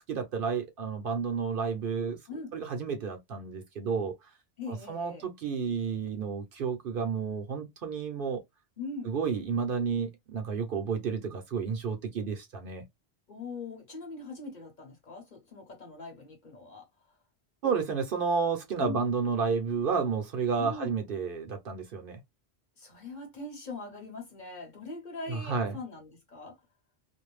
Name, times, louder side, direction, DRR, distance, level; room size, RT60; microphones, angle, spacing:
voice 1, 0.1-2.2 2.5-4.1 4.7-8.4 9.0-12.9 17.6-22.2 25.3-25.8, right 5 dB, 60° right, 0.7 m, -31 dB
voice 2, 4.6-5.2 8.8-9.1 13.3-16.8 18.8-19.0 20.6-20.9 22.8-26.5, left 3 dB, 45° left, 1.1 m, -41 dB
2.5 x 2.1 x 3.0 m
omnidirectional pair, 1.1 m